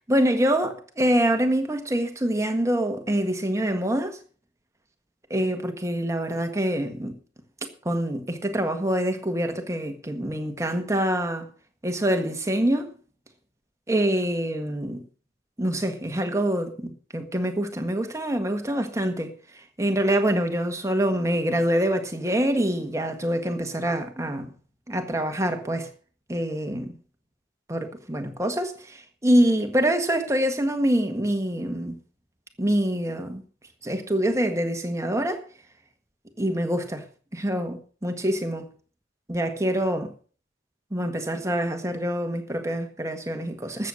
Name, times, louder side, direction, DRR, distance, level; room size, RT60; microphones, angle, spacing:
voice 1, 0.1-4.2 5.3-7.2 7.8-11.4 11.8-12.9 13.9-15.0 15.6-24.5 24.9-25.9 26.3-26.9 27.7-32.0 32.6-33.4 33.8-35.4 36.4-37.0 37.3-38.7 39.3-40.1 40.9-43.9, right 1 dB, 15° right, 1.6 m, -25 dB
13.5 x 7.9 x 6.3 m
head